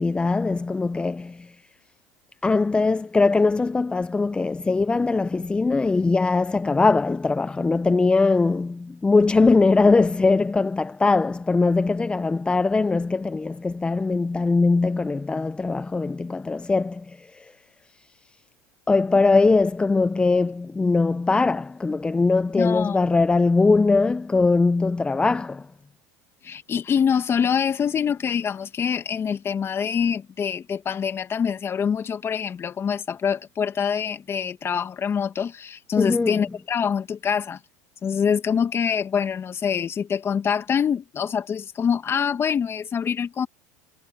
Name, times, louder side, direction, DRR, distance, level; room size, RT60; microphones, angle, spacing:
voice 1, 0.0-1.6 2.4-17.5 18.9-25.7 36.0-36.4, left 3 dB, 10° left, 0.5 m, -21 dB
voice 2, 22.6-23.0 26.4-37.6 38.0-43.5, left 7 dB, 30° left, 1.7 m, -25 dB
supercardioid pair, 105°, 9 cm